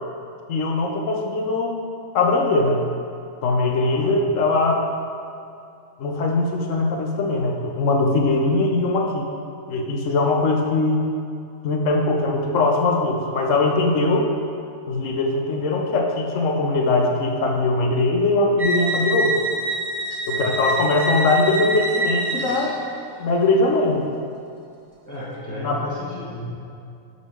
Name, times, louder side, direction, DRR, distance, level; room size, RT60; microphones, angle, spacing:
voice 1, 0.5-1.8 2.1-2.8 3.4-4.8 6.0-9.3 9.7-11.1 11.6-14.3 14.9-19.3 20.3-22.7 23.2-24.1 25.5-25.8, left 2 dB, 65° left, 1 dB, 1.0 m, -21 dB
voice 2, 3.7-4.2 20.3-20.7 25.0-26.4, left 1 dB, 15° left, -8 dB, 1.3 m, -35 dB
sound 1, 18.6-23.1, right 2 dB, 35° right, 0.6 m, -26 dB
6.3 x 3.6 x 6.0 m, 2.5 s
omnidirectional pair, 1.5 m